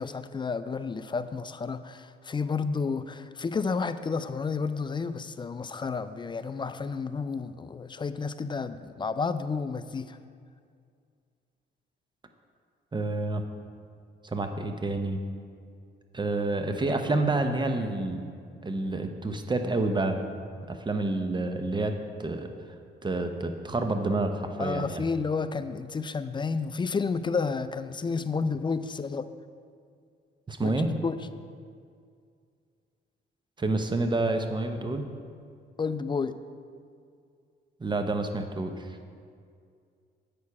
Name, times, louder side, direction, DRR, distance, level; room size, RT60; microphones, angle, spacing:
voice 1, 0.0-10.2 24.6-29.3 30.6-31.2 35.8-36.4, left 4 dB, 25° left, 12 dB, 0.3 m, -31 dB
voice 2, 12.9-13.4 14.2-15.2 16.1-18.3 18.6-20.2 20.7-22.5 23.0-25.0 30.5-30.9 33.6-35.1 37.8-38.9, right 2 dB, 25° right, 6 dB, 0.7 m, -28 dB
8.5 x 6.5 x 4.7 m, 2.2 s
cardioid pair, 90°, 20 cm